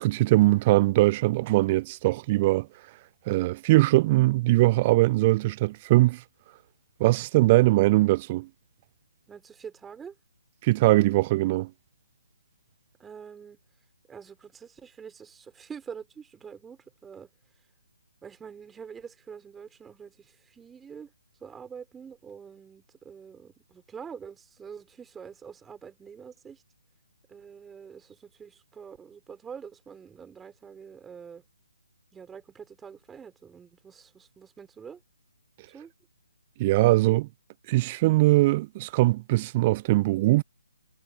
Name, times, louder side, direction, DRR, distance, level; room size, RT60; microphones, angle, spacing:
voice 1, 0.0-2.7 3.3-6.2 7.0-8.5 10.6-11.7 36.6-37.3 37.7-40.4, right 19 dB, 30° right, 0.3 m, -21 dB
voice 2, 9.3-10.1 13.0-13.6 14.1-17.3 18.2-21.1 21.4-26.6 27.3-31.4 32.1-35.0 35.7-35.9, right 7 dB, 10° right, 4.1 m, -45 dB
figure-of-eight pair, 140°, 0 cm